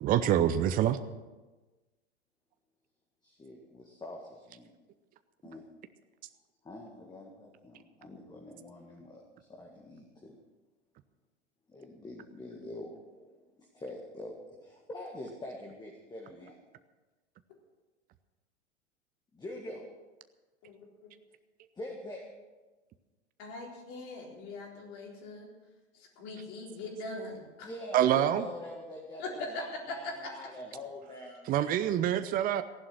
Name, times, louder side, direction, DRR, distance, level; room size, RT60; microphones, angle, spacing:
voice 1, 0.0-1.0 27.9-28.4 31.5-32.6, right 11 dB, 25° right, 12 dB, 0.8 m, -26 dB
voice 2, 3.2-4.7 5.4-5.6 6.6-10.4 11.7-16.6 19.3-19.8 21.8-22.2 27.6-32.1, left 1 dB, 10° left, 0 dB, 1.9 m, -45 dB
voice 3, 20.6-21.1 23.4-25.5 25.9-27.7 29.2-30.1, left 2 dB, 45° left, 0 dB, 4.0 m, -41 dB
16.0 x 11.0 x 6.2 m, 1.2 s
figure-of-eight pair, 90°, 34 cm